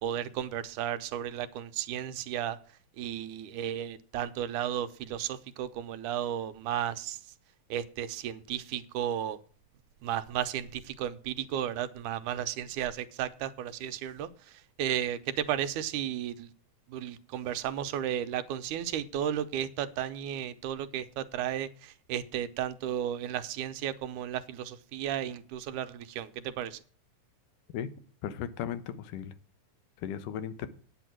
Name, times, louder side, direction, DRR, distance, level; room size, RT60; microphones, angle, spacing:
voice 1, 0.0-2.6 3.0-7.2 7.7-9.4 10.0-14.3 14.8-16.5 16.9-26.8, right 10 dB, 80° right, 2.2 m, -34 dB
voice 2, 28.2-29.3 30.0-30.7, left 9 dB, 85° left, 2.6 m, -36 dB
9.3 x 8.6 x 6.1 m
omnidirectional pair, 3.7 m